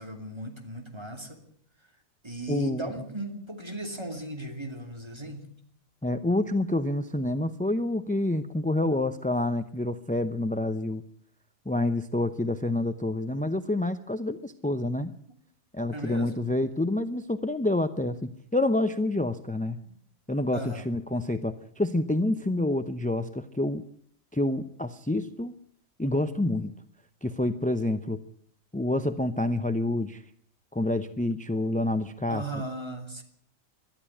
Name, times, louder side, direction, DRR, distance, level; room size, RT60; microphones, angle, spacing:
voice 1, 0.0-1.4 2.2-5.5 15.3-15.4 15.9-16.3 19.8-19.9 20.5-20.9 32.3-33.2, right 1 dB, 20° right, 5 dB, 2.9 m, -37 dB
voice 2, 2.5-2.9 6.0-11.0 11.7-15.1 15.7-19.8 20.3-23.8 24.3-25.5 26.0-26.7 27.2-28.2 28.7-30.2 30.7-32.4, left 1 dB, 10° left, 11 dB, 0.5 m, -28 dB
21.0 x 12.5 x 9.9 m, 0.63 s
omnidirectional pair, 1.4 m